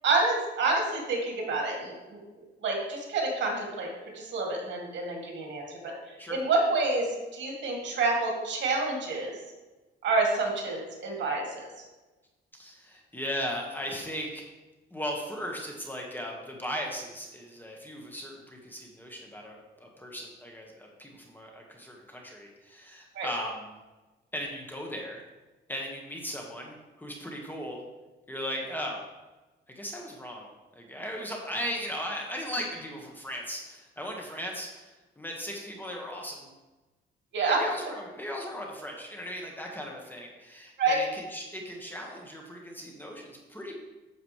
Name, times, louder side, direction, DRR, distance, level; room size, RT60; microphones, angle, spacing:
voice 1, 0.0-5.9 6.3-9.3 10.0-11.6 23.1-23.3 37.3-37.6 40.8-40.9, right 3 dB, 65° right, -1 dB, 2.6 m, -28 dB
voice 2, 12.5-14.4 14.9-23.8 24.3-25.2 25.7-27.8 28.3-29.1 29.7-30.5 30.7-36.5 37.5-43.7, equal, 10° left, 0 dB, 1.6 m, -37 dB
9.1 x 7.2 x 3.3 m, 1.2 s
cardioid pair, 90°, 20 cm